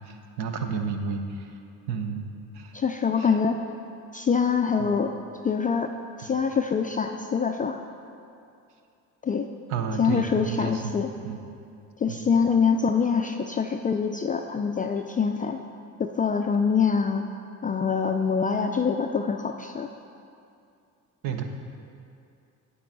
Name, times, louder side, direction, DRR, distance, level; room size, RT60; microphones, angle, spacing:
voice 1, 0.1-1.5 1.9-2.7 3.2-3.3 4.8-4.9 6.2-6.4 9.7-11.0 11.2-11.4 12.1-12.2 21.2-21.4, right 5 dB, 65° right, 5 dB, 1.0 m, -31 dB
voice 2, 2.7-3.6 4.1-5.1 5.4-5.9 6.2-7.8 9.2-9.5 10.0-11.1 12.0-15.6 16.0-17.3 17.6-19.9, left 6 dB, 20° left, 5 dB, 0.3 m, -24 dB
8.6 x 8.4 x 3.9 m, 2.5 s
hypercardioid pair, 60°, 42 cm